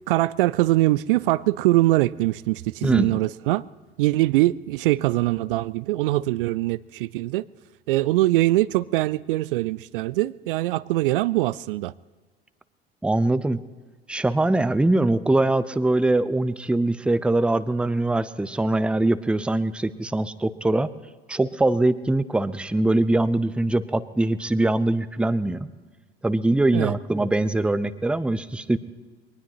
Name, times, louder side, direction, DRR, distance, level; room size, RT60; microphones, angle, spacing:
voice 1, 0.1-3.6 4.0-7.4 7.9-11.9 26.7-26.9, right 17 dB, 65° right, 0.4 m, -22 dB
voice 2, 2.8-3.2 13.0-13.6 14.1-20.9 21.3-25.7 26.2-28.8, right 2 dB, 5° right, 0.6 m, -22 dB
22.5 x 19.5 x 3.0 m
figure-of-eight pair, 65°, 30 cm